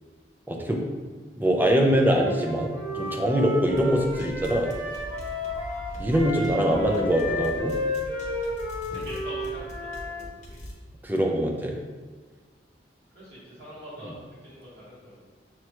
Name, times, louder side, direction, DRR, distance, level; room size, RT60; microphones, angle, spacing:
voice 1, 0.5-0.9 1.4-4.7 6.0-7.7 11.0-11.8 14.0-14.1, equal, 10° right, 0 dB, 0.4 m, -23 dB
Wind instrument woodwind instrument, 2.2-10.2, left 2 dB, 30° right, 1.0 m, -32 dB
sound 1, 3.6-10.7, equal, 40° left, 0.7 m, -41 dB
voice 2, 8.9-10.3 13.1-15.2, equal, 65° right, -10 dB, 1.2 m, -43 dB
6.1 x 2.2 x 2.9 m, 1.4 s
head